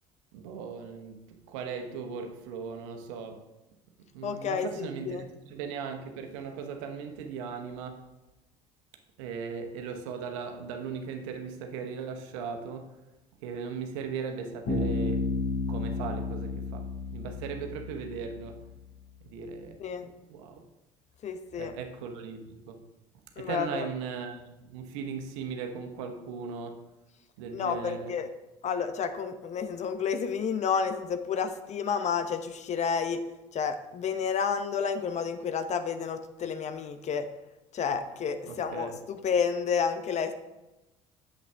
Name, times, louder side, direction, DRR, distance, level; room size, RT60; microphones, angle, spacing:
voice 1, 0.3-3.4 4.1-8.0 9.2-13.0 13.4-15.3 15.7-18.7 19.2-20.6 21.6-22.8 23.4-26.9 27.4-28.2 38.5-39.0, right 6 dB, 75° right, 1.0 m, -38 dB
voice 2, 4.2-5.2 19.8-20.1 21.2-21.7 23.4-23.9 27.5-28.3 28.6-33.2 33.5-37.3 37.7-40.3, left 6 dB, 45° left, 0.8 m, -30 dB
Bass guitar, 14.7-18.4, left 3 dB, 70° left, 3.1 m, -32 dB
8.3 x 7.2 x 3.4 m
hypercardioid pair, 65°, 16 cm